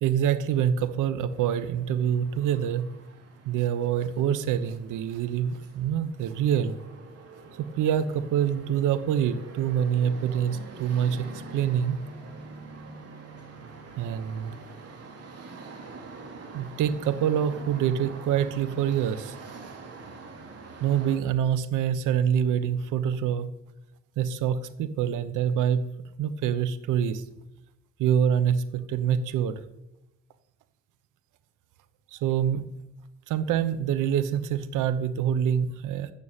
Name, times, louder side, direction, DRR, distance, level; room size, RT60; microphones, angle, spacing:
voice 1, 0.0-2.9 3.4-6.8 7.6-12.0 14.0-14.5 16.5-19.4 20.8-23.5 24.2-25.8 26.2-27.2 28.0-29.6 32.1-32.7 33.3-36.1, right 9 dB, 90° right, 13 dB, 1.0 m, -26 dB
sound 1, 1.3-21.2, right 3 dB, 55° right, 3.6 m, -45 dB
13.0 x 7.0 x 9.0 m, 0.91 s
cardioid pair, 90°, 30 cm